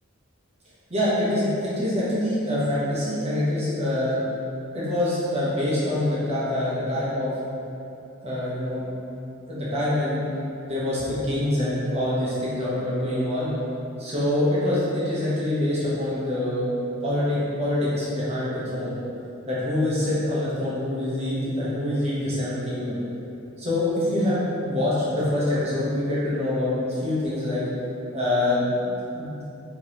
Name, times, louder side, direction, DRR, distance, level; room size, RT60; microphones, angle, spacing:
voice 1, 0.9-4.2 4.7-7.3 8.2-8.9 9.5-10.2 10.7-13.5 14.0-16.6 17.0-18.9 19.5-23.0 23.6-26.7 27.0-27.6 28.1-29.4, left 1 dB, 30° right, -9 dB, 1.1 m, -25 dB
5.1 x 3.4 x 2.9 m, 2.8 s
head